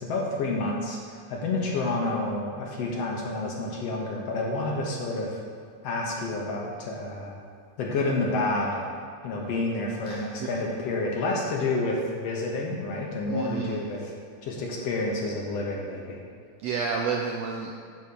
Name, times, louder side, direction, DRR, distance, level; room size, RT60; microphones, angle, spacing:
voice 1, 0.0-5.3 5.8-7.3 7.8-8.8 9.2-14.1 14.4-16.2, left 2 dB, 65° left, -2 dB, 2.0 m, -29 dB
voice 2, 10.0-10.5 13.3-13.9 16.6-17.7, right 5 dB, 85° right, 1 dB, 1.4 m, -30 dB
9.4 x 4.2 x 6.9 m, 2.2 s
omnidirectional pair, 3.5 m